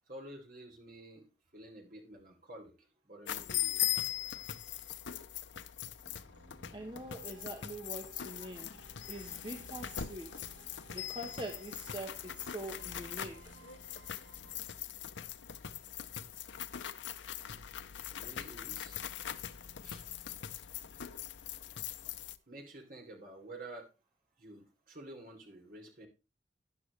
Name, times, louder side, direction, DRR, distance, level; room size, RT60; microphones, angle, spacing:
voice 1, 0.1-1.3 1.5-3.8 18.1-19.0 19.8-20.1 22.5-23.9 24.4-26.1, right 1 dB, 50° right, 1 dB, 3.2 m, -50 dB
sound 1, 3.3-22.4, left 11 dB, 85° left, 0.7 m, -41 dB
sound 2, 6.0-14.6, right 3 dB, 85° right, 1.7 m, -59 dB
voice 2, 6.7-8.7 9.1-10.5 10.9-13.6, right 1 dB, 25° right, 3 dB, 1.1 m, -44 dB
12.5 x 9.9 x 3.3 m, 0.28 s
head